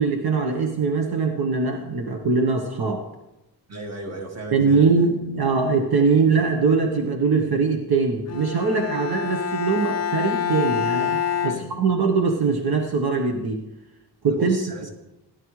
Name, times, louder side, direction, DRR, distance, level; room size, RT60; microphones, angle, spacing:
voice 1, 0.0-3.1 4.5-13.6 14.2-14.6, right 4 dB, 70° right, 4 dB, 1.0 m, -22 dB
voice 2, 3.7-5.1 6.2-6.3 11.4-11.7 14.3-14.9, right 1 dB, 40° right, 3 dB, 1.7 m, -35 dB
Bowed string instrument, 8.3-12.4, left 7 dB, 40° left, 0.5 m, -27 dB
16.0 x 11.0 x 3.1 m, 0.96 s
wide cardioid pair, 165°, 39 cm